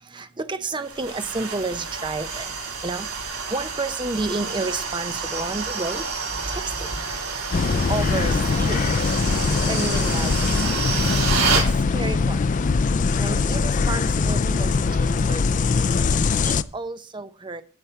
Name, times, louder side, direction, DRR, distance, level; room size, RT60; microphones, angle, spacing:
voice 1, 0.1-2.5 2.8-6.0 6.5-6.9 7.9-8.9 9.6-10.9 11.5-11.6 11.9-12.4 13.2-15.7 16.4-17.6, right 3 dB, 20° right, 0.6 m, -31 dB
sound 1, 0.8-11.7, right 4 dB, 90° right, 3.3 m, -29 dB
sound 2, 7.5-16.6, left 4 dB, 35° left, 0.4 m, -22 dB
10.0 x 4.8 x 8.1 m
head